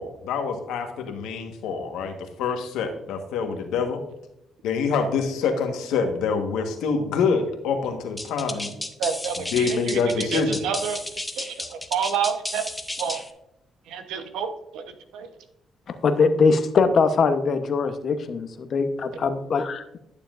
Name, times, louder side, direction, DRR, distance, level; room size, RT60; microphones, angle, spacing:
voice 1, 0.0-4.0 4.6-8.7 9.5-10.6, left 5 dB, 90° left, 5 dB, 1.3 m, -26 dB
sound 1, 8.2-13.3, left 1 dB, 10° left, 0.9 m, -33 dB
voice 2, 9.0-11.0 11.4-12.6 13.0-13.2 13.9-15.3, right 7 dB, 90° right, 8 dB, 1.0 m, -29 dB
voice 3, 15.9-20.0, left 4 dB, 55° left, 9 dB, 0.9 m, -22 dB
11.5 x 6.9 x 2.5 m, 0.84 s
cardioid pair, 90°, 0 cm